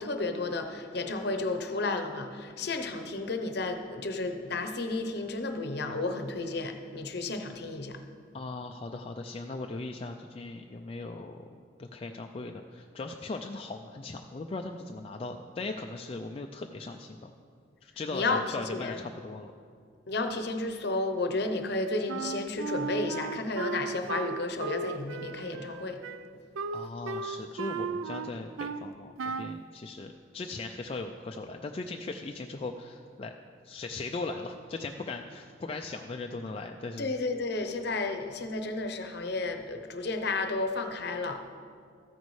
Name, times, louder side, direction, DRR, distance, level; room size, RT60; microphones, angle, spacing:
voice 1, 0.0-8.0 18.1-19.0 20.1-26.0 37.0-41.4, left 3 dB, 55° left, 6 dB, 0.7 m, -32 dB
voice 2, 8.3-11.4 11.8-17.3 17.8-19.5 26.7-33.3 33.6-37.1, left 3 dB, 30° left, 4 dB, 0.3 m, -38 dB
Wind instrument woodwind instrument, 22.1-28.9 29.2-29.6, right 4 dB, 85° right, 0.4 m, -36 dB
13.5 x 9.3 x 3.2 m, 2.2 s
head